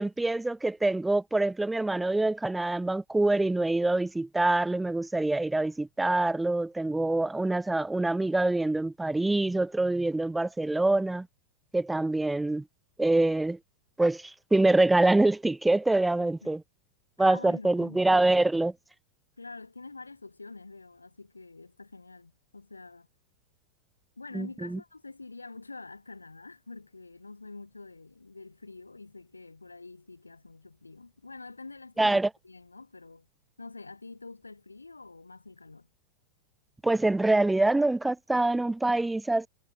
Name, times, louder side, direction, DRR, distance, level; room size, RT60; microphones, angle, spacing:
voice 1, 0.0-11.3 11.7-12.6 13.0-13.6 14.0-16.6 17.2-18.7 24.3-24.8 32.0-32.3 36.8-39.5, right 2 dB, 5° right, 0.7 m, -25 dB
voice 2, 16.2-16.5 17.2-18.0 19.4-23.1 24.2-33.3 33.6-35.9, left 3 dB, 80° left, 4.6 m, -46 dB
figure-of-eight pair, 90°, 0 cm